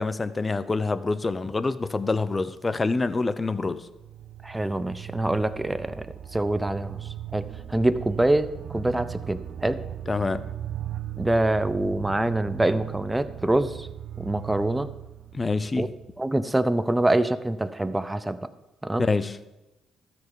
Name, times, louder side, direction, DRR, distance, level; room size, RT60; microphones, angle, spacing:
voice 1, 0.0-3.9 10.1-10.5 15.3-15.9 19.0-19.4, left 3 dB, 25° left, 0.7 m, -26 dB
sound 1, 3.9-16.4, right 11 dB, 60° right, 0.7 m, -38 dB
voice 2, 4.4-9.8 11.2-13.9 14.2-14.9 15.8-15.9 16.2-18.4 18.8-19.0, right 1 dB, 10° right, 0.7 m, -25 dB
13.0 x 6.1 x 7.1 m
cardioid pair, 90°, 0 cm